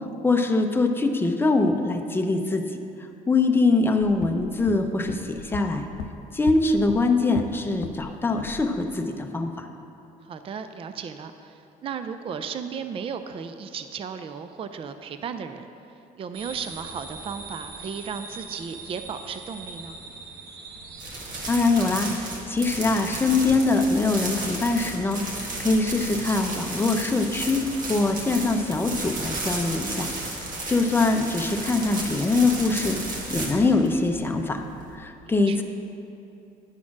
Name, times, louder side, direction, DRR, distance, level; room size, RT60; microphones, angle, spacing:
voice 1, 0.2-2.6 3.3-5.9 6.3-9.7 21.5-27.6 27.9-34.6 34.9-35.6, left 3 dB, 15° left, 4 dB, 0.6 m, -23 dB
sound 1, 4.0-8.1 8.4-8.7, left 8 dB, 85° left, 0.5 m, -38 dB
voice 2, 10.3-15.7 16.2-20.0 35.5-35.6, right 6 dB, 35° right, 9 dB, 0.4 m, -35 dB
sound 2, 16.3-21.4, right 3 dB, 80° right, 1.1 m, -41 dB
sound 3, 21.0-35.0, right 2 dB, 50° right, 1.6 m, -33 dB
10.5 x 4.2 x 6.0 m, 2.8 s
cardioid pair, 110°, 17 cm